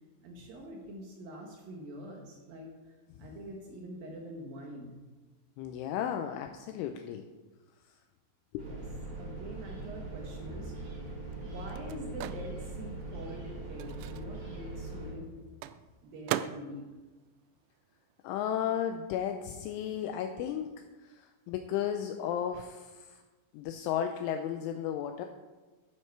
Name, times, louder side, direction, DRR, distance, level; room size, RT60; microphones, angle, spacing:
voice 1, 0.2-5.0 8.6-8.8 9.2-10.7 11.4-15.4 16.0-16.9, equal, 70° right, 1 dB, 2.2 m, -45 dB
voice 2, 5.6-7.2 8.5-8.7 18.2-23.2 23.5-25.3, left 9 dB, 80° left, 5 dB, 2.9 m, -34 dB
sound 1, 8.6-15.1, right 2 dB, 40° right, 3.5 m, -41 dB
Microwave oven, 10.5-18.5 18.7-20.6, right 13 dB, 90° right, 3.3 m, -43 dB
12.5 x 9.5 x 4.6 m, 1.2 s
omnidirectional pair, 5.9 m